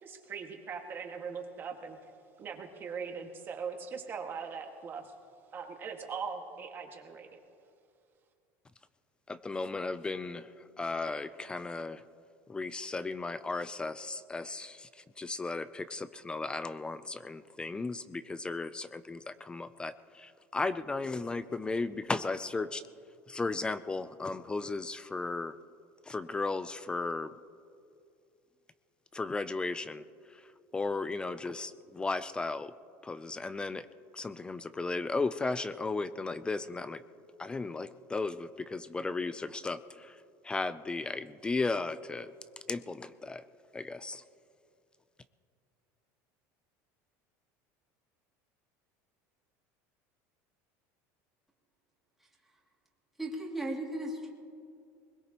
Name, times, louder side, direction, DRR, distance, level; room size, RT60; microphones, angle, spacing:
voice 1, 0.0-2.0 2.4-5.1 5.5-7.4, right 6 dB, 30° right, 3 dB, 1.8 m, -40 dB
voice 2, 9.3-12.0 12.5-22.8 23.3-25.5 26.0-27.4 29.1-32.7 33.0-33.9 34.1-37.0 37.4-42.3 42.7-43.4 43.7-44.2, left 3 dB, 15° left, 14 dB, 0.4 m, -35 dB
voice 3, 53.2-54.3, right 1 dB, 5° right, -3 dB, 2.4 m, -36 dB
21.5 x 20.5 x 2.9 m, 2.4 s
supercardioid pair, 135°, 7 cm